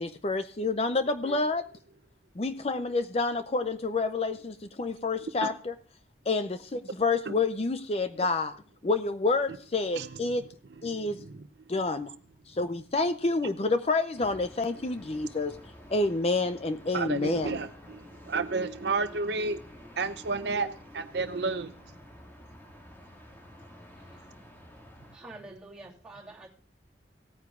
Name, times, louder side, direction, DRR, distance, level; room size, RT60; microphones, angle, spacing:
voice 1, 0.0-1.6 2.4-5.7 6.3-8.6 8.8-10.4 10.8-11.2 11.7-12.1 12.5-15.6 15.9-17.6, left 3 dB, 35° left, 10 dB, 0.5 m, -28 dB
voice 2, 10.0-10.4 10.8-11.5 16.9-21.8, right 4 dB, 70° right, 10 dB, 0.7 m, -32 dB
sound 1, 14.1-25.2, equal, 10° left, 1.9 m, -50 dB
voice 3, 25.1-26.5, right 2 dB, 5° right, -5 dB, 3.0 m, -47 dB
18.0 x 9.4 x 2.4 m, 0.42 s
head